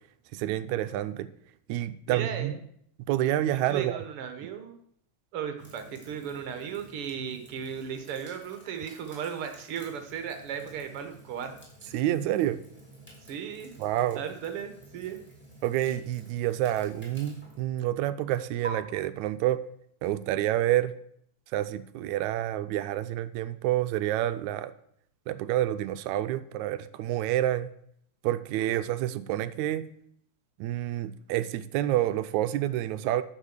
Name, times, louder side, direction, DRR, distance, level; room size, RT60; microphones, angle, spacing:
voice 1, 0.3-1.3 1.7-2.6 3.1-4.0 11.9-12.6 13.8-14.2 15.6-19.6 20.0-20.9 21.5-24.7 25.3-27.7 28.2-29.9 30.6-33.2, right 13 dB, 80° right, 13 dB, 1.8 m, -28 dB
voice 2, 2.1-2.6 3.5-4.8 5.3-11.6 13.2-13.7 14.1-15.2, right 8 dB, 60° right, 7 dB, 1.6 m, -36 dB
sound 1, 5.6-18.7, right 2 dB, 5° left, 3.3 m, -50 dB
10.0 x 7.2 x 6.5 m, 0.69 s
omnidirectional pair, 3.6 m